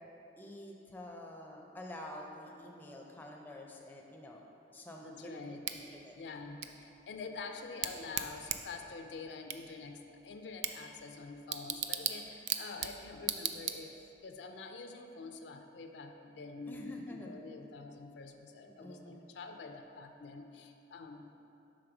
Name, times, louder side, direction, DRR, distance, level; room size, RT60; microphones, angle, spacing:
voice 1, 0.4-4.4 4.7-5.6 5.9-6.6 16.7-17.4 18.6-19.2, left 1 dB, 10° left, 0 dB, 0.4 m, -48 dB
voice 2, 5.0-5.7 6.2-21.4, left 4 dB, 70° left, 5 dB, 0.4 m, -46 dB
Bicycle / Tick, 5.6-14.2, right 10 dB, 65° right, 0.3 m, -40 dB
5.1 x 3.8 x 5.8 m, 2.8 s
head